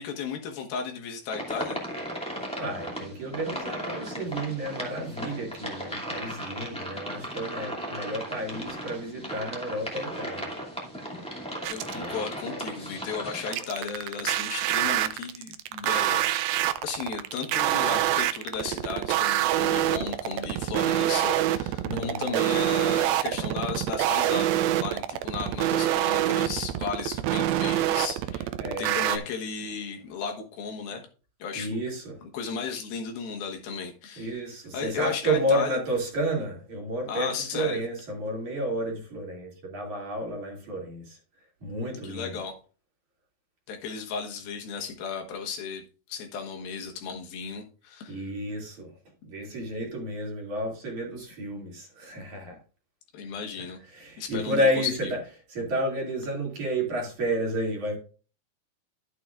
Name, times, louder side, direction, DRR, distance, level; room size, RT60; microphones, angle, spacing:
voice 1, 0.0-1.8 11.7-16.5 16.8-28.5 28.8-31.0 31.4-31.8 32.2-34.4 34.7-35.8 37.1-37.8 42.0-42.5 43.7-45.8 46.1-48.3 53.1-53.8 54.2-54.7, left 6 dB, 75° left, 3 dB, 3.2 m, -35 dB
sound 1, 1.3-13.6, equal, ahead, 1.4 m, -36 dB
voice 2, 2.6-10.5 11.9-12.2 21.8-22.5 28.6-29.3 31.5-32.2 34.2-41.2 41.6-42.4 48.1-48.9 49.2-52.6 53.6-58.0, right 1 dB, 55° right, -1 dB, 3.8 m, -31 dB
sound 2, 11.6-12.1 13.5-29.2, right 13 dB, 85° right, 2.5 m, -26 dB
12.0 x 8.1 x 2.5 m, 0.36 s
omnidirectional pair, 4.3 m